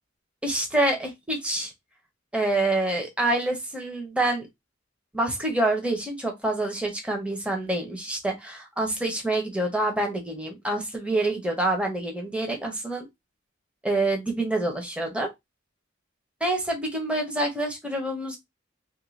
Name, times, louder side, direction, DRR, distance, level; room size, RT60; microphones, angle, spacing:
voice 1, 0.4-1.7 2.3-4.5 5.1-13.1 13.8-15.3 16.4-18.4, right 2 dB, 5° right, 0.8 m, -27 dB
3.1 x 2.6 x 3.1 m
head